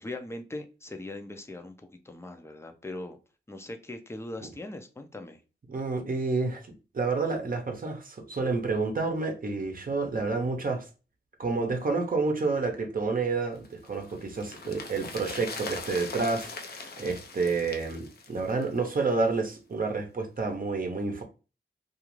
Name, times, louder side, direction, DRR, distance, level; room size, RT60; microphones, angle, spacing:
voice 1, 0.0-3.2 3.5-5.4, left 2 dB, 15° left, 0.5 m, -40 dB
voice 2, 5.7-10.9 11.4-21.2, right 3 dB, 50° right, 0.7 m, -29 dB
sound 1, 13.6-19.1 19.3-19.4, left 3 dB, 60° left, 0.5 m, -41 dB
2.5 x 2.4 x 3.0 m
wide cardioid pair, 80°, 19 cm